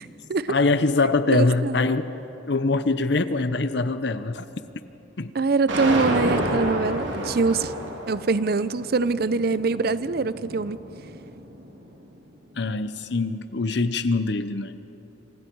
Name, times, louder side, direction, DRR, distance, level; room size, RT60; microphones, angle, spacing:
voice 1, 0.5-2.1 2.5-4.5 5.2-5.3 12.6-14.8, left 3 dB, 60° left, 12 dB, 0.8 m, -23 dB
voice 2, 1.3-1.9 5.3-7.7 8.1-10.8, right 4 dB, 50° right, 15 dB, 0.5 m, -24 dB
sound 1, 5.7-11.8, right 1 dB, 70° right, 2.9 m, -30 dB
26.5 x 26.0 x 4.7 m, 3.0 s
head